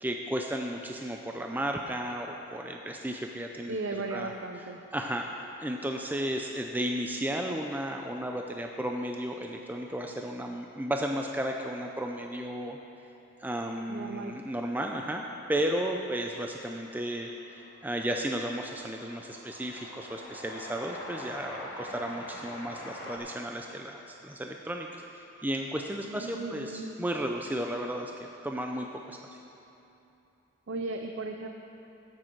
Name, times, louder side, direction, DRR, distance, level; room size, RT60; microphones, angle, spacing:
voice 1, 0.0-3.7 4.1-4.3 4.9-5.3 5.6-12.8 13.4-15.2 15.5-24.9 25.1-28.1 28.4-29.4, right 1 dB, 10° right, 2 dB, 0.4 m, -34 dB
voice 2, 3.7-4.8 13.9-14.3 26.0-27.0 30.7-31.5, right 3 dB, 65° right, 4 dB, 0.5 m, -36 dB
Train, 16.4-23.2, left 1 dB, 70° left, 2.0 m, -45 dB
13.5 x 8.7 x 4.6 m, 2.9 s
head